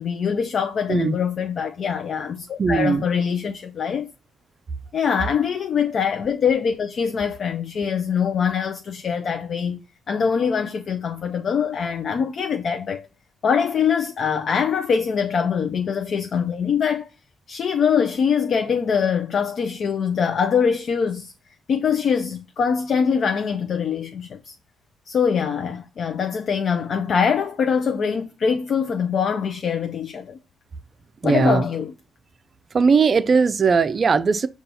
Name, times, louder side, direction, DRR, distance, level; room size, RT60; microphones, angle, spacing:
voice 1, 0.0-4.1 4.9-9.8 10.1-13.1 13.4-17.1 17.5-21.3 21.7-24.5 25.1-30.4 31.2-31.9, left 6 dB, 55° left, 0.5 m, -23 dB
voice 2, 2.6-3.0 31.2-31.7 32.7-34.5, right 5 dB, 40° right, 0.4 m, -18 dB
5.4 x 2.3 x 4.0 m
cardioid pair, 90°, 0 cm